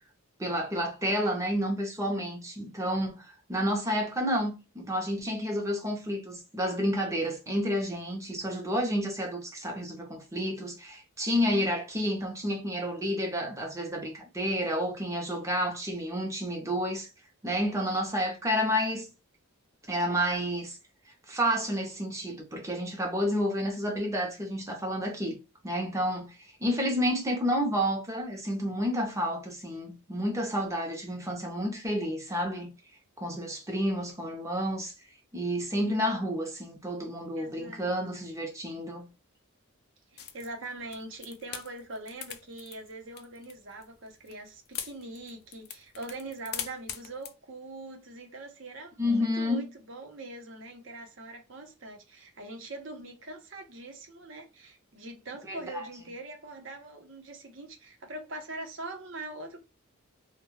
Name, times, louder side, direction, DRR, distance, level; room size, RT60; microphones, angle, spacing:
voice 1, 0.4-17.1 17.4-19.1 19.9-20.8 21.3-25.4 25.6-26.3 26.6-32.7 33.2-34.9 35.3-39.1 49.0-49.7 55.5-55.9, equal, 15° right, 0.6 m, -30 dB
voice 2, 37.3-37.9 40.1-59.6, right 2 dB, 55° right, 0.7 m, -43 dB
sound 1, 40.2-47.3, left 9 dB, 45° left, 0.3 m, -41 dB
2.3 x 2.2 x 3.0 m
head